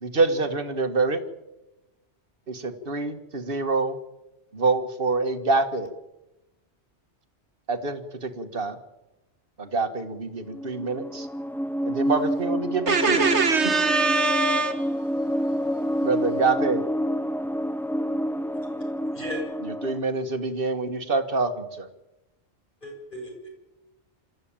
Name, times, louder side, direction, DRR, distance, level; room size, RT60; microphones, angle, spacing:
voice 1, 0.0-1.2 2.5-4.0 4.5-5.9 7.7-8.8 9.6-11.3 11.9-13.3 16.0-16.9 19.8-21.9, right 3 dB, 50° right, 1.8 m, -26 dB
sound 1, 10.5-20.0, equal, 5° left, 0.3 m, -28 dB
voice 2, 12.9-15.0, right 4 dB, 75° right, 2.2 m, -22 dB
voice 3, 18.8-19.4 22.8-23.5, left 1 dB, 45° left, 7.1 m, -37 dB
27.0 x 13.5 x 8.9 m
omnidirectional pair, 1.2 m